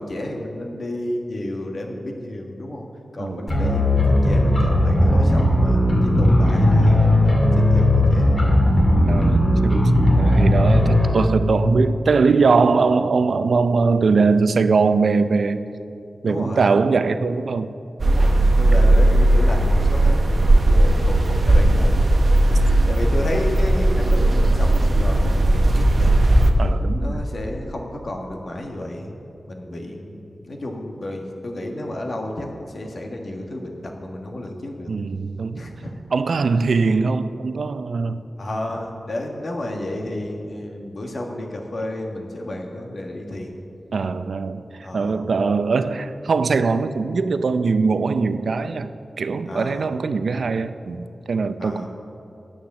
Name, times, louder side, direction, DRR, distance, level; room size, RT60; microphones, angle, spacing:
voice 1, 0.0-2.9 3.1-8.3 16.2-16.7 18.0-22.2 22.6-26.3 27.0-29.1 29.5-34.9 35.5-35.9 38.4-43.6 44.8-45.2 49.5-49.9 51.6-51.9, left 1 dB, 60° left, 1 dB, 1.5 m, -31 dB
voice 2, 3.2-3.5 9.1-15.6 16.2-17.7 26.6-27.2 34.9-35.7 36.1-38.2 43.9-48.9 49.2-51.9, right 4 dB, 80° right, 12 dB, 0.5 m, -21 dB
sound 1, 3.5-11.1, left 1 dB, 40° left, 2.3 m, -17 dB
sound 2, 18.0-26.5, right 1 dB, 55° right, 0.9 m, -16 dB
10.5 x 8.1 x 7.2 m, 2.7 s
wide cardioid pair, 95°, 0 cm